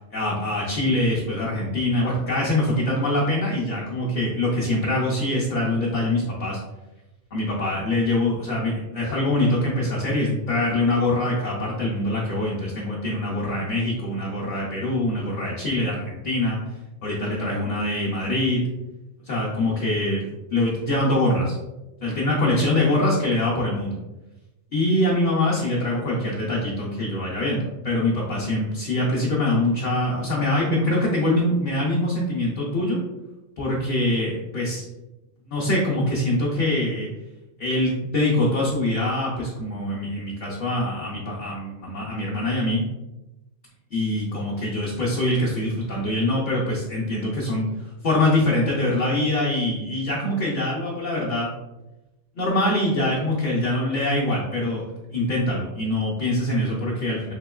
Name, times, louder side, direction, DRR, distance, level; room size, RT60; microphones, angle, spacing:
voice 1, 0.1-6.6 7.3-16.6 17.0-18.6 19.3-21.6 22.0-23.9 24.7-33.0 33.6-34.8 35.5-37.1 37.6-42.8 43.9-47.7 48.0-51.5 52.4-54.8 55.1-57.3, left 1 dB, 50° left, -5 dB, 0.7 m, -24 dB
3.6 x 2.8 x 2.3 m, 1.0 s
omnidirectional pair, 1.3 m